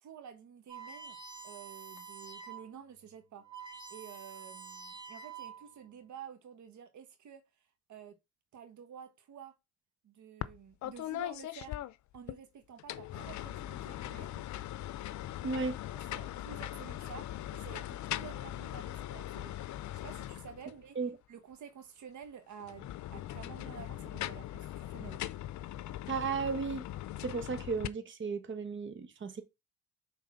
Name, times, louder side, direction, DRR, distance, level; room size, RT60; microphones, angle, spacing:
voice 1, 0.0-1.2 1.4-7.4 7.9-8.2 8.5-9.5 10.0-11.8 12.1-14.4 16.1-19.5 19.9-21.0 21.3-25.2, right 8 dB, 70° right, 1.6 m, -51 dB
sound 1, 0.7-2.7 3.1-3.2 3.4-5.8, right 5 dB, 15° right, 1.9 m, -47 dB
sound 2, 10.4-10.6 10.8-12.4 12.8-20.8 22.6-27.9, left 13 dB, 70° left, 0.6 m, -40 dB
voice 2, 15.4-15.7 20.9-21.1 26.1-26.9 27.2-29.4, right 4 dB, 40° right, 1.3 m, -34 dB
6.3 x 4.0 x 5.6 m
cardioid pair, 90°, 30 cm